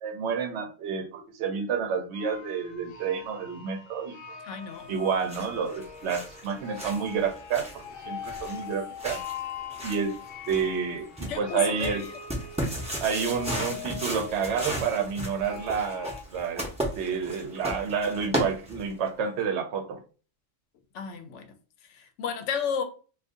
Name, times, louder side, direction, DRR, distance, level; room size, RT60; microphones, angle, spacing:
voice 1, 0.0-4.2 4.9-9.2 9.8-10.2 10.5-12.0 13.0-16.7 17.0-20.0, right 6 dB, 70° right, 0.9 m, -29 dB
sound 1, 2.1-16.2, left 8 dB, 60° left, 0.7 m, -42 dB
voice 2, 4.4-4.9 11.3-12.2 20.9-21.5 21.9-22.8, left 7 dB, 80° left, 0.9 m, -33 dB
sound 2, 4.9-19.1, right 1 dB, 5° right, 0.7 m, -36 dB
2.6 x 2.4 x 3.5 m
omnidirectional pair, 1.3 m